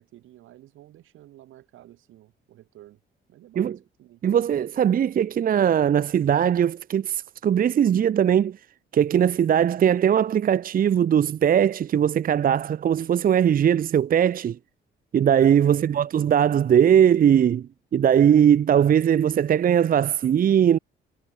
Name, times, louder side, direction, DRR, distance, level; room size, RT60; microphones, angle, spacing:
voice 1, 0.0-3.0 3.3-4.2 15.7-16.1, right 14 dB, 85° right, 6.7 m, -51 dB
voice 2, 4.2-8.6 8.9-14.6 15.1-20.8, right 9 dB, 45° right, 0.6 m, -20 dB
cardioid pair, 90°, 20 cm